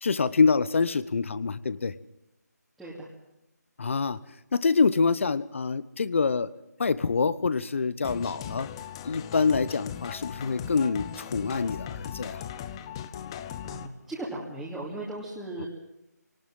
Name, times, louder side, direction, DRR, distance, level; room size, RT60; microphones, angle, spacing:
voice 1, 0.0-1.9 3.8-4.2 4.5-6.5 6.8-8.7 9.0-12.4 15.6-15.7, left 4 dB, 45° left, 17 dB, 1.1 m, -26 dB
sound 1, 8.0-13.9, left 10 dB, 15° left, 0.8 m, -38 dB
voice 2, 13.6-15.7, right 2 dB, ahead, -10 dB, 2.7 m, -37 dB
23.5 x 19.0 x 7.6 m, 0.88 s
figure-of-eight pair, 160°, 9 cm